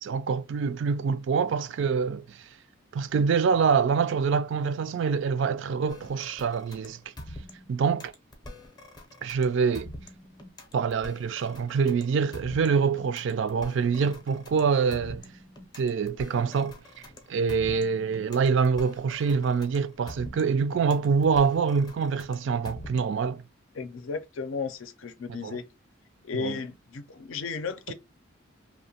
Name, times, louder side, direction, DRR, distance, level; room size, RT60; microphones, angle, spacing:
voice 1, 0.0-2.5 2.9-7.0 7.7-8.1 9.2-9.9 10.7-15.2 15.8-16.8 17.3-23.4 25.4-25.6 26.3-26.6, right 5 dB, 60° right, 0.3 m, -25 dB
sound 1, 5.9-23.3, left 1 dB, 20° left, 0.6 m, -45 dB
voice 2, 23.7-25.6 26.2-27.9, left 5 dB, 70° left, 0.5 m, -34 dB
2.8 x 2.1 x 2.7 m
head